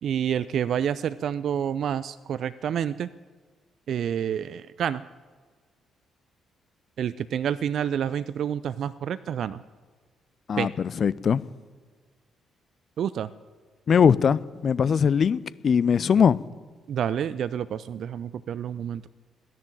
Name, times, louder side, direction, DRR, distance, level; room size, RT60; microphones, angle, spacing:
voice 1, 0.0-3.1 3.9-5.0 7.0-9.6 10.6-10.7 13.0-13.3 16.9-19.1, right 9 dB, 60° right, 0.5 m, -28 dB
voice 2, 10.5-11.4 13.9-16.4, left 7 dB, 50° left, 0.6 m, -21 dB
15.0 x 10.5 x 8.8 m
figure-of-eight pair, 40°, 0 cm